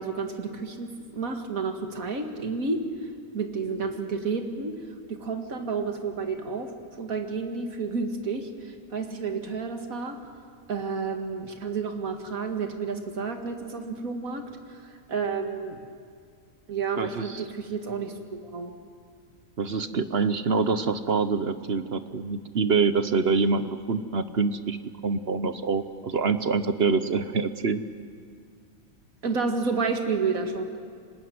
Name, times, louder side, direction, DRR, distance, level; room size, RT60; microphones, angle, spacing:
voice 1, 0.0-2.8 3.3-4.8 5.1-6.7 7.0-10.2 10.7-15.8 16.7-18.7 29.2-30.7, right 4 dB, 70° right, 5 dB, 2.4 m, -30 dB
voice 2, 17.0-17.4 19.6-24.8 25.0-27.8, right 4 dB, 50° right, 11 dB, 1.0 m, -25 dB
25.0 x 20.5 x 9.4 m, 2.1 s
omnidirectional pair, 1.5 m